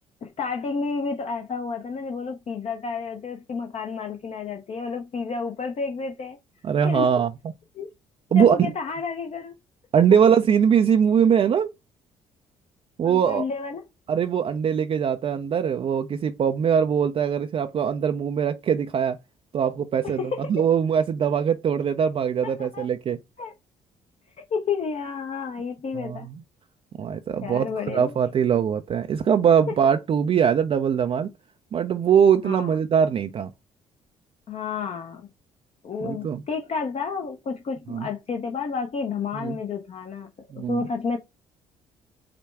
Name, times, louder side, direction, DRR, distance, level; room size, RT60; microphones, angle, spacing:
voice 1, 0.2-6.4 6.8-7.1 7.8-7.9 8.3-9.6 13.0-13.8 20.0-20.6 22.4-22.8 23.4-23.5 24.5-26.3 27.4-28.1 32.4-32.7 34.5-35.3 35.8-40.3 40.5-41.2, left 5 dB, 45° left, 0.8 m, -31 dB
voice 2, 6.6-7.3 8.3-8.6 9.9-11.7 13.0-13.4 14.1-19.2 19.5-23.2 25.9-26.4 27.0-31.3 31.7-33.5 36.0-36.4 37.9-38.1 39.3-39.6 40.5-40.9, right 7 dB, 40° right, 0.4 m, -22 dB
5.0 x 2.2 x 4.5 m
hypercardioid pair, 50°, 15 cm